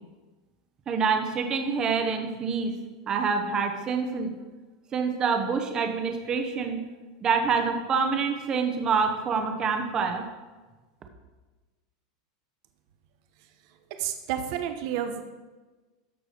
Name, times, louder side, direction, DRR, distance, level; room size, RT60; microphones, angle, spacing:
voice 1, 0.9-2.7 3.1-4.3 4.9-6.8 7.2-10.2, right 5 dB, 25° right, 5 dB, 1.0 m, -26 dB
voice 2, 14.0-15.2, right 9 dB, 60° right, 7 dB, 0.9 m, -30 dB
13.0 x 4.8 x 5.0 m, 1.2 s
supercardioid pair, 145°, 3 cm